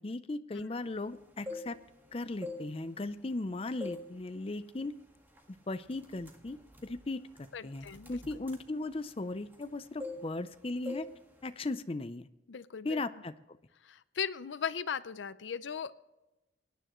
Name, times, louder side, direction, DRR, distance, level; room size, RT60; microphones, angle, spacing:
voice 1, 0.0-1.8 2.1-4.9 5.7-7.2 7.6-11.1 11.4-12.3 12.8-13.3, left 2 dB, 30° left, 11 dB, 0.5 m, -37 dB
sound 1, 1.2-2.0 2.3-3.4 3.8-4.1 4.5-4.8 5.4-5.5 5.9-9.7 10.0-10.6 10.9-11.1 11.4-11.7, left 2 dB, 10° right, 1.7 m, -44 dB
voice 2, 7.5-8.1 12.5-13.0 13.8-16.0, left 7 dB, 85° left, 15 dB, 0.5 m, -38 dB
24.0 x 10.0 x 3.1 m, 1.0 s
head